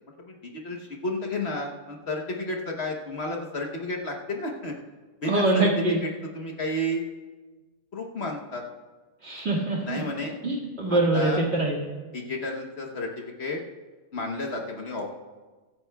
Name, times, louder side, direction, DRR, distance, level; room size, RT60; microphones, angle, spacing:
voice 1, 0.2-4.7 5.2-6.1 6.3-7.0 7.9-8.6 9.8-10.4 10.9-11.4 12.1-13.6 14.1-15.1, left 1 dB, 50° left, 1 dB, 1.2 m, -32 dB
voice 2, 5.2-6.0 9.2-10.0 10.4-11.8, right 2 dB, 45° right, -3 dB, 2.1 m, -24 dB
24.0 x 9.4 x 2.3 m, 1.3 s
omnidirectional pair, 1.5 m